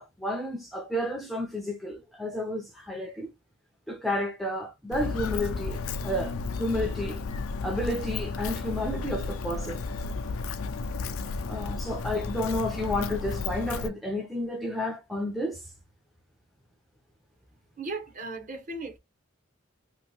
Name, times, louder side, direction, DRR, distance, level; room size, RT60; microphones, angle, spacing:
voice 1, 0.0-3.3 3.9-7.2 7.6-9.8 11.5-15.6, left 1 dB, ahead, 0.5 m, -31 dB
Walk footsteps, 4.9-13.9, left 4 dB, 90° left, 0.5 m, -33 dB
voice 2, 17.8-19.0, right 3 dB, 40° right, 0.9 m, -36 dB
2.9 x 2.6 x 2.9 m
head